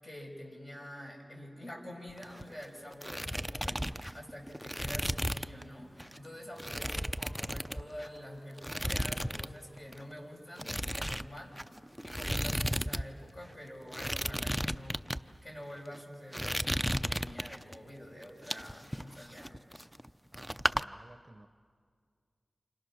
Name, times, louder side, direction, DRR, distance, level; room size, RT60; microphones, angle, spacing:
voice 1, 0.0-11.7 12.0-19.6, equal, 40° left, 0 dB, 6.5 m, -47 dB
sound 1, 2.1-2.6 2.9-5.6 6.0-6.2 6.6-8.2 8.6-9.5 9.8-10.0 10.6-13.0 13.3-13.4 13.9-15.2 15.8-16.0 16.3-17.8 18.2-20.1 20.3-20.8, equal, ahead, 0.6 m, -34 dB
sound 2, 4.8-10.2, equal, 15° left, 6.3 m, -64 dB
voice 2, 20.3-21.5, right 2 dB, 30° right, 10 dB, 0.9 m, -56 dB
29.0 x 28.0 x 6.4 m, 2.1 s
wide cardioid pair, 60°, 0 cm